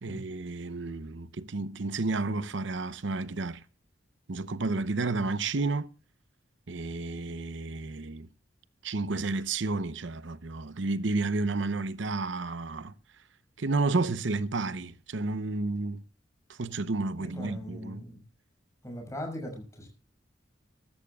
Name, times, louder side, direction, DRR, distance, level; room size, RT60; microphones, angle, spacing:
voice 1, 0.0-3.6 4.3-5.9 6.7-8.3 8.8-12.9 13.6-16.0 16.5-18.0, right 3 dB, 70° right, 0.7 m, -31 dB
voice 2, 17.2-18.2 18.8-19.9, equal, 15° left, 6.4 m, -40 dB
21.5 x 13.5 x 2.3 m
head